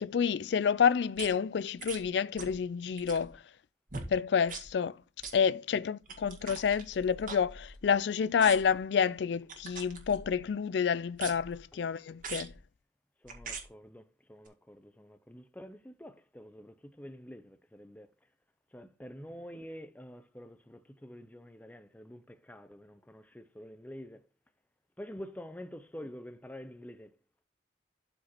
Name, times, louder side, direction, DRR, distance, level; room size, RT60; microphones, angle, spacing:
voice 1, 0.0-3.4 4.1-5.0 5.3-12.5, left 7 dB, 70° left, 0.4 m, -29 dB
sound 1, 1.2-1.3 1.8-2.0 2.4-2.6 2.9-3.3 3.9-4.1 4.5-4.7 5.2-5.4 6.1-8.0 8.4-8.8 9.5-10.4 11.1-11.6 12.2-12.6 13.3-13.7 14.5-14.6, right 4 dB, 45° right, 2.0 m, -43 dB
voice 2, 13.2-18.1 18.7-24.3 25.0-27.1, equal, 10° left, 0.6 m, -47 dB
12.0 x 5.0 x 2.9 m
head